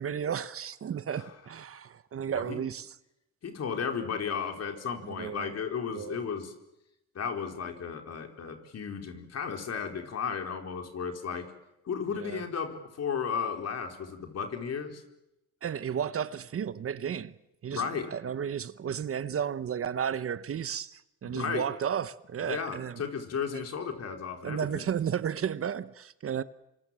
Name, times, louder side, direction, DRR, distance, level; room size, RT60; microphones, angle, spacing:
voice 1, 0.0-2.9 5.1-5.5 5.9-6.2 12.1-12.4 15.6-17.3 17.6-23.0 23.5-23.6 24.4-26.4, right 8 dB, 50° right, 1.0 m, -33 dB
voice 2, 3.4-6.5 7.1-11.5 11.8-15.0 17.7-18.1 21.3-21.6 22.4-24.8, left 6 dB, 55° left, 4.5 m, -34 dB
27.5 x 26.0 x 7.7 m
cardioid pair, 90°, 30 cm